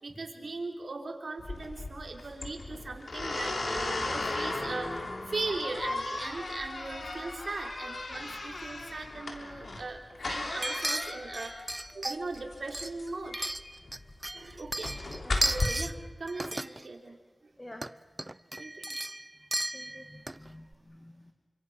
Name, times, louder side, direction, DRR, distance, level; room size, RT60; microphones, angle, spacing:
voice 1, 0.0-13.4 14.3-15.0 15.4-17.2 18.6-18.9, right 3 dB, 80° right, 3 dB, 3.5 m, -39 dB
sound 1, 1.4-15.6, left 2 dB, 80° left, 3.3 m, -36 dB
sound 2, 10.6-12.4 12.7-14.0 14.2-15.9 16.3-16.8 17.7-17.9 18.2-20.5 20.7-20.8, right 1 dB, 30° right, 0.7 m, -34 dB
voice 2, 19.7-21.3, left 1 dB, 25° left, 4 dB, 2.3 m, -49 dB
28.0 x 26.0 x 6.2 m, 1.3 s
cardioid pair, 45°, 0 cm